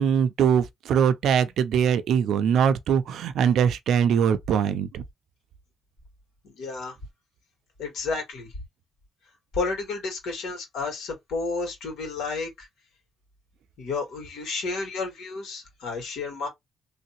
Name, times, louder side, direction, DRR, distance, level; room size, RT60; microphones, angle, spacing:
voice 1, 0.0-5.0, right 8 dB, 70° right, 0.5 m, -22 dB
voice 2, 6.4-7.0 7.8-8.5 9.5-12.7 13.8-16.5, left 4 dB, 90° left, 2.2 m, -31 dB
3.3 x 2.8 x 2.9 m
cardioid pair, 175°, 0 cm